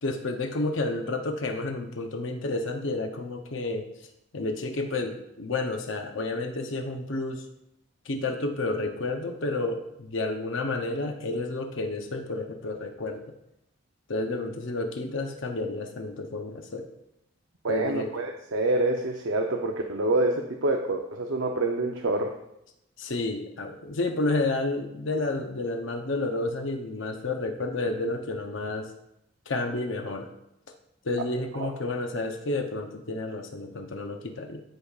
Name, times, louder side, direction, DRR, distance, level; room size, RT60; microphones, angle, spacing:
voice 1, 0.0-3.9 4.3-7.4 8.1-13.2 14.1-16.9 17.7-18.1 23.0-28.9 29.5-30.3 31.0-34.6, left 2 dB, 65° left, 4 dB, 0.7 m, -30 dB
voice 2, 17.6-22.3 31.6-31.7, right 2 dB, 70° right, 2 dB, 0.6 m, -27 dB
13.0 x 5.3 x 2.4 m, 0.81 s
head